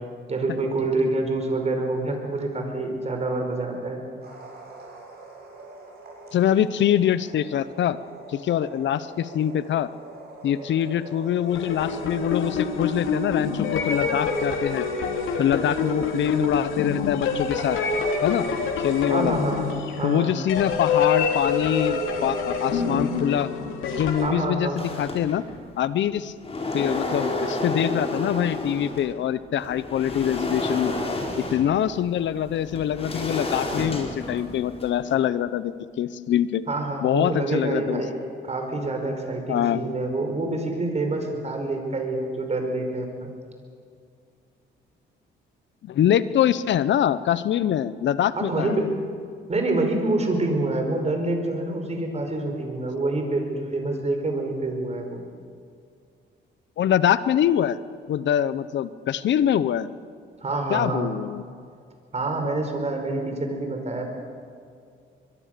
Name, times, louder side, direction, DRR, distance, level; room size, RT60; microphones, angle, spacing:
voice 1, 0.3-4.0 19.1-19.7 20.0-20.3 24.2-24.8 36.7-38.2 38.4-43.3 48.3-48.9 49.5-55.2 60.4-61.1 62.1-64.1, right 2 dB, 35° right, 4 dB, 5.4 m, -27 dB
sound 1, 4.2-12.3, right 2 dB, 50° right, 7.5 m, -44 dB
voice 2, 6.3-8.0 8.3-9.9 10.4-14.9 15.4-17.8 18.2-18.5 18.8-19.3 20.0-23.5 23.9-25.4 25.8-26.3 26.7-30.9 31.4-36.6 37.0-38.0 39.5-39.8 45.8-48.9 56.8-57.8 58.1-59.9 60.7-61.4, left 10 dB, 65° left, 15 dB, 0.9 m, -24 dB
sound 2, 11.5-24.3, left 5 dB, 85° left, 3.2 m, -26 dB
sound 3, 24.8-25.7 26.2-29.1 29.6-35.2, left 2 dB, 30° left, 5.0 m, -31 dB
23.5 x 22.5 x 6.9 m, 2.3 s
cardioid pair, 90°, 20 cm